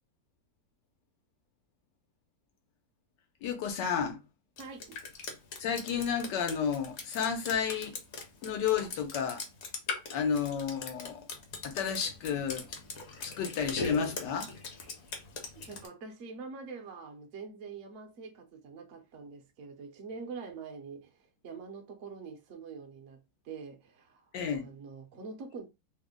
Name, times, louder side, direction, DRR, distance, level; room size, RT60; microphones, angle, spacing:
voice 1, 3.4-4.2 5.6-8.0 8.4-9.4 10.1-11.3 11.6-12.8 13.2-14.5 24.3-24.7, left 7 dB, 85° left, 1.5 m, -31 dB
Drip, 4.6-15.9, left 4 dB, 55° left, 0.9 m, -40 dB
voice 2, 4.6-5.0 15.5-25.6, right 4 dB, 60° right, 0.9 m, -45 dB
3.4 x 2.1 x 3.6 m
omnidirectional pair, 1.8 m